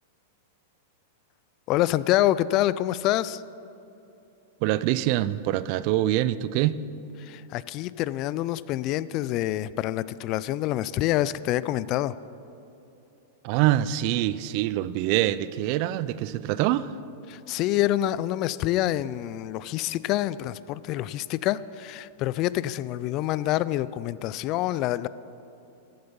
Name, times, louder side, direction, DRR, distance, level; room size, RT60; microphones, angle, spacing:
voice 1, 1.7-3.4 7.2-12.1 17.3-25.1, left 14 dB, 45° left, 0.3 m, -26 dB
voice 2, 4.6-6.8 13.4-16.9, right 14 dB, 50° right, 0.4 m, -25 dB
14.5 x 7.9 x 5.4 m
hypercardioid pair, 115°, 0 cm